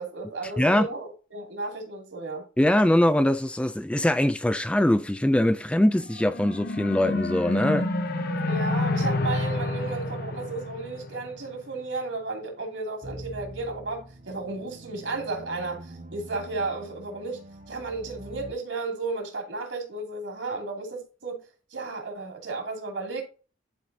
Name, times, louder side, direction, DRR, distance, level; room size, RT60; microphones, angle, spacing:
voice 1, 0.0-2.4 8.5-17.4 17.7-21.4 21.7-23.2, right 3 dB, 70° right, 2.8 m, -33 dB
voice 2, 0.6-0.9 2.6-7.9, left 1 dB, 5° left, 0.3 m, -22 dB
sound 1, 6.0-11.5, left 2 dB, 55° left, 0.9 m, -29 dB
sound 2, 13.0-18.5, right 1 dB, 45° right, 1.0 m, -44 dB
11.5 x 4.8 x 2.8 m
head